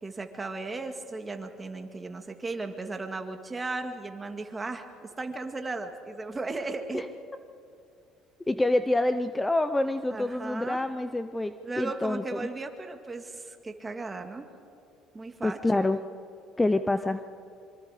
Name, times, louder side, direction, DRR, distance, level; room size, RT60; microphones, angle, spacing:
voice 1, 0.0-7.1 10.1-10.8 11.6-14.5 15.1-15.9, right 3 dB, 20° right, 6 dB, 1.9 m, -36 dB
voice 2, 8.5-12.5 15.4-16.0 16.6-17.2, left 2 dB, 10° left, 11 dB, 0.6 m, -27 dB
25.5 x 24.5 x 5.0 m, 2.5 s
cardioid pair, 110°, 0 cm